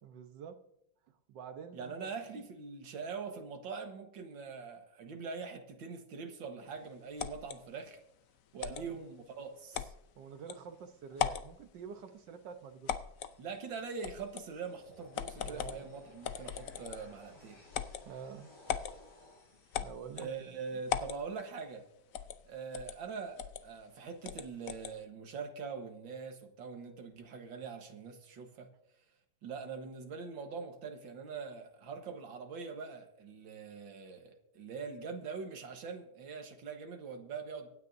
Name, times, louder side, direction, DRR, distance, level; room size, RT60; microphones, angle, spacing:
voice 1, 0.0-0.6 1.3-2.1 8.6-8.9 10.2-12.9 15.4-15.9 18.0-18.5 19.7-20.6, right 6 dB, 70° right, 7 dB, 1.6 m, -47 dB
voice 2, 1.7-8.0 8.5-9.9 13.4-17.6 20.1-21.8 22.5-28.7 29.4-37.7, right 5 dB, 85° right, 6 dB, 2.1 m, -43 dB
sound 1, 7.2-7.6 8.6-8.9 9.7-10.0 10.5-10.6 11.1-11.5 12.9-13.3 14.0-14.5 15.1-15.8 16.2-17.1 17.7-18.0 18.7-18.9 19.7-20.3 20.9-21.2 22.1-22.4 22.7-23.0 23.4-23.6 24.2-24.9, left 9 dB, 65° left, 0.9 m, -37 dB
sound 2, 13.1-21.1, left 1 dB, 90° left, 5.6 m, -60 dB
24.5 x 9.5 x 2.7 m, 0.80 s
omnidirectional pair, 2.0 m